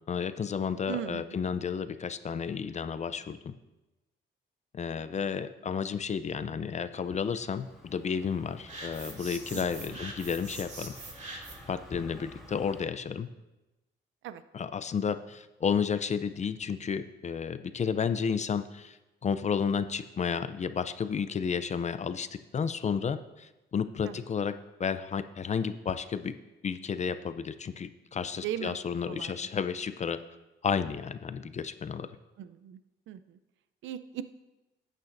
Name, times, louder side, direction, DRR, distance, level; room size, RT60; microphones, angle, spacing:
voice 1, 0.1-3.5 4.7-10.9 11.2-13.3 14.5-19.0 19.2-26.3 26.6-30.2 30.6-32.1, left 6 dB, 35° left, 12 dB, 0.5 m, -32 dB
voice 2, 0.9-1.4 5.0-5.1 9.5-10.0 14.2-14.4 24.0-24.2 28.4-28.8 29.1-29.5 32.4-32.8 33.1-33.4 33.8-34.2, right 11 dB, 75° right, 12 dB, 0.5 m, -38 dB
Car passing by, 6.9-12.9, left 1 dB, ahead, 2.0 m, -51 dB
sound 1, 8.7-11.8, right 2 dB, 35° right, 2.4 m, -43 dB
13.0 x 9.1 x 2.6 m, 1.0 s
cardioid pair, 90°, 20 cm